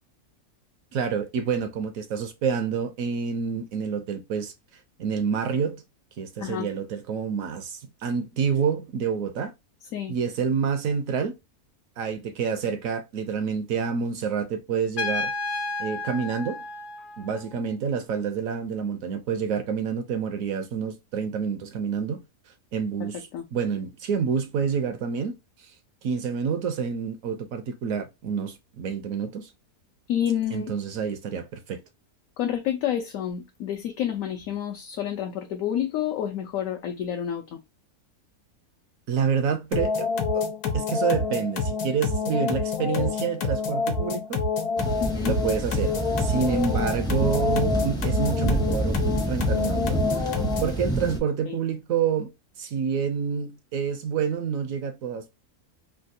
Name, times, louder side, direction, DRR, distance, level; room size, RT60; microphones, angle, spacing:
voice 1, 0.9-4.5 5.0-5.8 6.2-9.5 10.1-11.3 12.0-15.3 15.8-16.6 17.2-22.2 22.7-25.4 26.0-29.5 30.5-31.8 39.1-40.1 40.3-40.4 40.7-44.4 45.2-45.9 46.2-49.0 49.3-52.3 52.6-55.3, right 6 dB, 70° right, 0.9 m, -28 dB
voice 2, 6.4-6.7 9.9-10.2 23.0-23.4 30.1-30.7 32.4-37.6 45.0-45.4 51.5-51.6, left 10 dB, 70° left, 0.9 m, -29 dB
Trumpet, 15.0-17.6, left 3 dB, 45° left, 0.7 m, -32 dB
sound 1, 39.7-50.8, left 4 dB, 90° left, 1.3 m, -27 dB
sound 2, 44.8-51.2, right 1 dB, 5° left, 0.5 m, -28 dB
3.4 x 2.3 x 2.6 m
omnidirectional pair, 1.6 m